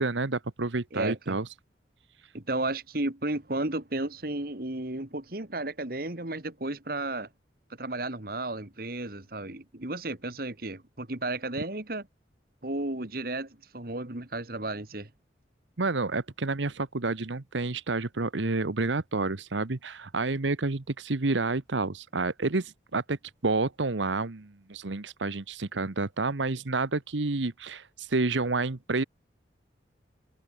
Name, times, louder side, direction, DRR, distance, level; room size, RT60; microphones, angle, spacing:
voice 1, 0.0-1.5 15.8-23.2 23.4-29.0, right 3 dB, 85° right, 1.1 m, -29 dB
voice 2, 0.9-1.4 2.3-7.3 7.8-12.1 12.6-15.1, right 2 dB, 50° right, 2.0 m, -33 dB
open air
head